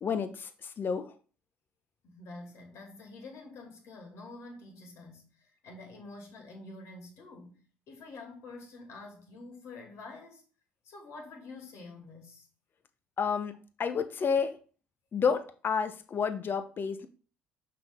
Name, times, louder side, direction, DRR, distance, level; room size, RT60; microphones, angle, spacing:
voice 1, 0.0-1.1 13.2-13.5 13.8-14.6 15.1-17.1, left 6 dB, 45° left, 1.0 m, -30 dB
voice 2, 2.0-10.4 10.8-12.5, left 3 dB, 65° left, 2.5 m, -47 dB
5.8 x 5.8 x 3.8 m
hypercardioid pair, 55°, 5 cm